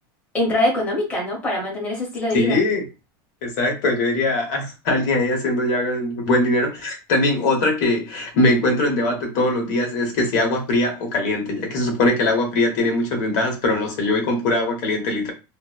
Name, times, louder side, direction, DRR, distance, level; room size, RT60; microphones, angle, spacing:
voice 1, 0.3-2.6, left 1 dB, 10° left, 0.8 m, -23 dB
voice 2, 2.3-2.8 3.4-15.3, left 2 dB, 50° left, 0.9 m, -21 dB
2.9 x 2.0 x 2.3 m
supercardioid pair, 175°, 12 cm